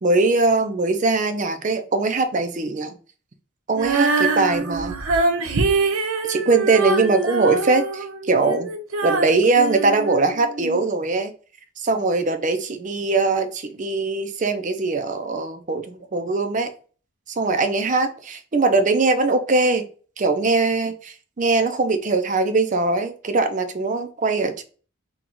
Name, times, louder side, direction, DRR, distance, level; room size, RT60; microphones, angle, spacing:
voice 1, 0.0-3.0 3.7-4.9 6.2-8.7 9.0-11.3 11.8-16.7 17.4-19.8 20.2-24.6, right 3 dB, 35° right, 8 dB, 0.5 m, -21 dB
Female singing, 3.7-10.8, right 3 dB, 85° right, 0.7 m, -24 dB
3.8 x 2.3 x 4.4 m, 0.39 s
head